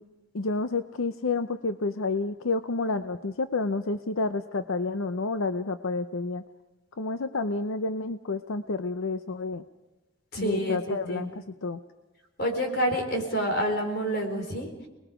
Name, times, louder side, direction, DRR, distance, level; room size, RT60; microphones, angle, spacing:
voice 1, 0.3-6.4 7.0-9.6 10.4-11.8, left 3 dB, 85° left, 10 dB, 0.7 m, -29 dB
voice 2, 10.3-11.4 12.4-14.7, equal, 50° left, 4 dB, 4.2 m, -28 dB
29.5 x 20.5 x 5.0 m, 1.1 s
head